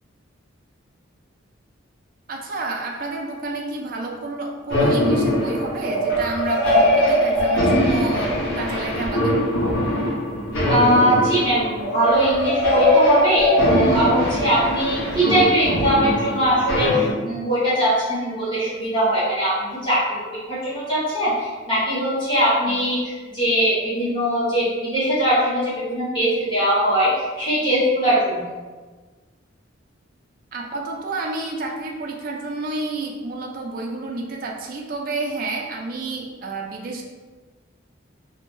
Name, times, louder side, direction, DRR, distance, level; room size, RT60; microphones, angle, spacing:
voice 1, 2.3-9.4 22.7-22.8 30.5-37.0, right 2 dB, 45° right, 1 dB, 0.3 m, -30 dB
sound 1, 4.7-17.1, equal, 85° left, 0.7 m, -21 dB
voice 2, 10.6-19.5 19.8-20.0 20.3-28.4, equal, 25° left, -10 dB, 1.1 m, -21 dB
2.5 x 2.1 x 3.1 m, 1.4 s
head